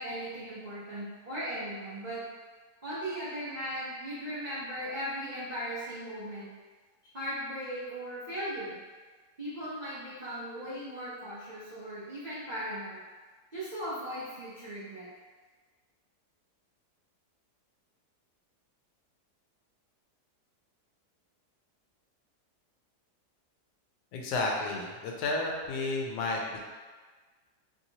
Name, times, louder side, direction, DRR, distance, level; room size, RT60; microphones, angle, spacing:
voice 1, 0.0-2.2 2.8-6.5 7.1-8.8 9.4-13.0 13.5-15.1, equal, 65° right, -12 dB, 0.4 m, -38 dB
voice 2, 24.1-26.7, left 2 dB, 80° left, -1 dB, 1.2 m, -32 dB
3.1 x 2.7 x 2.8 m, 1.4 s
omnidirectional pair, 1.8 m